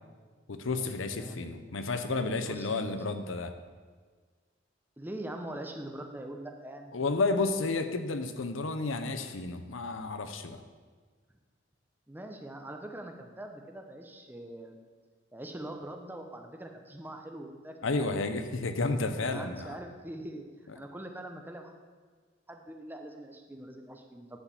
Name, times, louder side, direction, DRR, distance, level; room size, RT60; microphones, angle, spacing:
voice 1, 0.5-3.5 6.9-10.6 17.8-19.8, left 3 dB, 80° left, 9 dB, 0.7 m, -31 dB
voice 2, 1.1-1.6 2.3-3.4 5.0-6.9 12.1-14.8 15.3-18.1 19.1-20.4 20.7-21.7 22.5-24.4, right 1 dB, 10° right, 4 dB, 0.7 m, -43 dB
10.0 x 4.9 x 7.1 m, 1.5 s
head